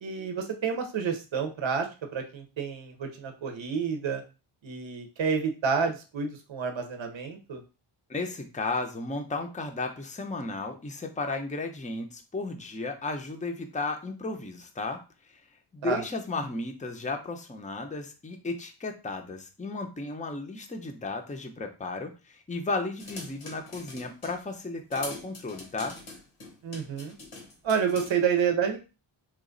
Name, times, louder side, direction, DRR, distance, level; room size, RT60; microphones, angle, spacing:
voice 1, 0.0-4.2 4.6-7.6 15.8-16.0 26.6-27.1 27.6-28.8, right 6 dB, 65° right, 5 dB, 0.7 m, -29 dB
voice 2, 8.1-15.0 15.7-26.0, left 3 dB, 15° left, 4 dB, 0.5 m, -34 dB
sound 1, 23.0-24.4 24.9-28.1, left 2 dB, 90° left, 1.1 m, -43 dB
3.1 x 2.3 x 3.8 m, 0.31 s
wide cardioid pair, 60°, 49 cm